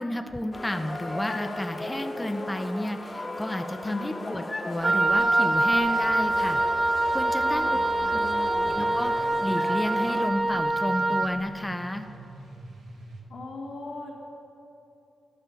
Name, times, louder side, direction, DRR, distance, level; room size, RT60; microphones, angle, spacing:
voice 1, 0.0-6.6 7.1-7.8 8.1-8.2 8.6-12.1, left 1 dB, 15° left, 7 dB, 0.6 m, -32 dB
sound 1, 0.5-10.3, left 2 dB, 35° left, 1.2 m, -37 dB
voice 2, 3.8-4.4 7.7-8.9 13.3-14.1, left 3 dB, 85° left, -6 dB, 1.6 m, -40 dB
Wind instrument woodwind instrument, 4.8-11.4, right 2 dB, 40° right, 0.6 m, -24 dB
sound 2, 4.8-13.2, right 1 dB, 85° right, 1.3 m, -47 dB
11.5 x 4.3 x 7.0 m, 2.8 s
supercardioid pair, 40°, 0 cm